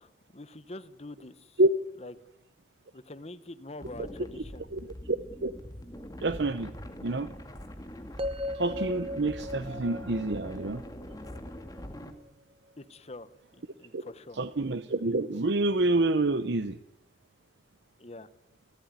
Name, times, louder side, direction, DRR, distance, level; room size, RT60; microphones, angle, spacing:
voice 1, 0.0-1.6 2.0-2.1 2.9-4.6 12.8-14.4 18.0-18.3, left 2 dB, 35° left, 13 dB, 1.1 m, -45 dB
sound 1, 3.8-12.1, equal, 20° left, 2.1 m, -43 dB
voice 2, 5.1-5.5 6.0-6.7 7.0-7.3 8.5-10.8 13.9-14.0 14.4-16.8, right 2 dB, 75° right, 11 dB, 0.8 m, -27 dB
sound 2, 8.2-12.3, left 1 dB, 30° right, 0.9 m, -38 dB
29.5 x 13.0 x 9.7 m, 0.91 s
head